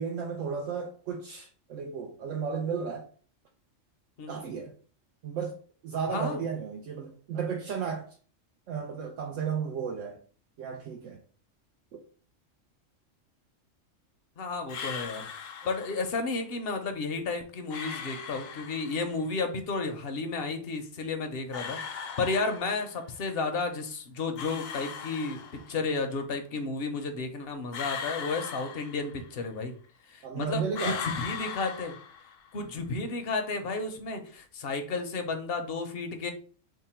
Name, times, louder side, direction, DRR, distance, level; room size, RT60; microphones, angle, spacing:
voice 1, 0.0-3.1 4.3-4.7 5.2-5.6 5.8-8.2 8.7-10.2 10.6-11.2 11.9-12.0 30.2-31.0, right 6 dB, 75° right, 0.9 m, -34 dB
voice 2, 4.2-4.5 6.1-6.4 14.4-15.3 15.7-29.7 30.1-32.0 32.5-36.3, left 3 dB, 55° left, 0.8 m, -32 dB
sound 1, 14.7-16.2 17.7-19.2 21.5-23.1 24.4-25.9 27.7-29.5 30.7-32.6, left 6 dB, 85° left, 1.0 m, -39 dB
3.6 x 2.1 x 4.2 m
omnidirectional pair, 1.4 m